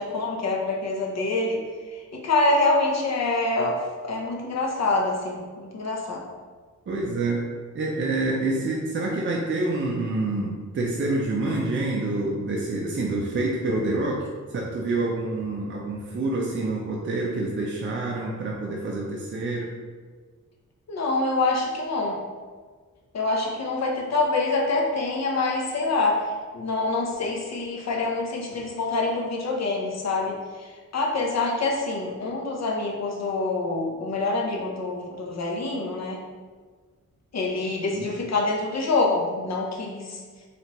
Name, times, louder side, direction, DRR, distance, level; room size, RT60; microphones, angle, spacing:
voice 1, 0.0-1.6 1.9-6.2 20.9-22.2 23.1-30.7 30.9-36.2 37.3-40.2, left 2 dB, 55° left, -2 dB, 0.8 m, -26 dB
voice 2, 6.9-19.7 37.9-38.1, right 2 dB, 40° right, -3 dB, 0.5 m, -27 dB
4.2 x 3.3 x 3.0 m, 1.5 s
wide cardioid pair, 140°, 31 cm